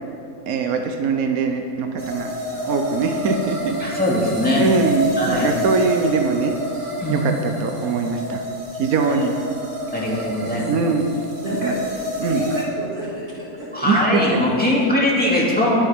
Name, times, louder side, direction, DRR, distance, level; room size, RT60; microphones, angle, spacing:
voice 1, 0.5-2.3 2.6-4.0 4.5-6.6 7.1-8.4 8.7-9.4 10.7-11.1 11.6-11.7 12.2-12.4 13.8-14.4, right 4 dB, 80° right, 4 dB, 1.3 m, -22 dB
sound 1, 2.0-12.7, equal, 35° right, 2.1 m, -29 dB
voice 2, 3.8-4.7 5.2-5.5 7.0-7.3 9.9-10.6 13.7-15.8, left 1 dB, 5° left, -5 dB, 2.5 m, -20 dB
voice 3, 9.9-10.8 11.4-12.0 12.3-15.0, right 1 dB, 60° right, -6 dB, 2.8 m, -32 dB
21.0 x 9.3 x 3.6 m, 2.8 s
omnidirectional pair, 1.5 m